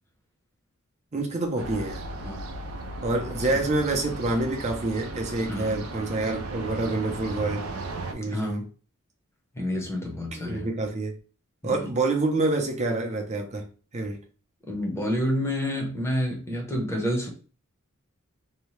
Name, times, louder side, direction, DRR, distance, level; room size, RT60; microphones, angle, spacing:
voice 1, 1.1-2.0 3.0-7.6 8.1-8.6 10.3-11.1 11.6-13.6 13.9-14.2, right 2 dB, 30° right, 2 dB, 0.6 m, -27 dB
sound 1, 1.6-8.1, right 2 dB, 80° right, 0.4 m, -36 dB
voice 2, 5.5-5.8 8.3-8.7 9.5-10.7 11.6-11.9 14.7-17.3, left 1 dB, 15° left, -1 dB, 0.7 m, -29 dB
2.7 x 2.2 x 3.1 m, 0.37 s
head